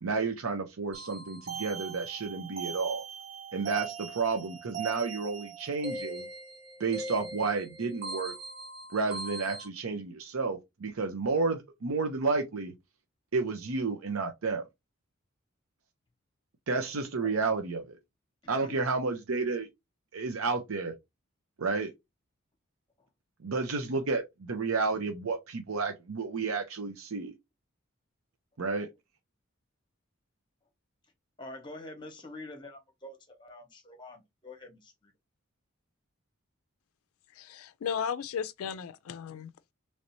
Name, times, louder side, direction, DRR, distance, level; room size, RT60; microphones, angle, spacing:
voice 1, 0.0-3.0 3.5-6.3 6.8-8.3 8.9-12.7 13.3-14.6 16.7-18.0 18.5-19.7 20.1-20.9 21.6-21.9 23.4-27.3 28.6-28.9, right 4 dB, 85° right, 0.7 m, -31 dB
sound 1, 0.9-9.7, right 4 dB, 50° right, 1.4 m, -40 dB
voice 2, 31.4-35.1, left 2 dB, 20° left, 0.9 m, -46 dB
voice 3, 37.4-39.7, left 7 dB, 85° left, 0.4 m, -35 dB
3.2 x 2.7 x 3.0 m
head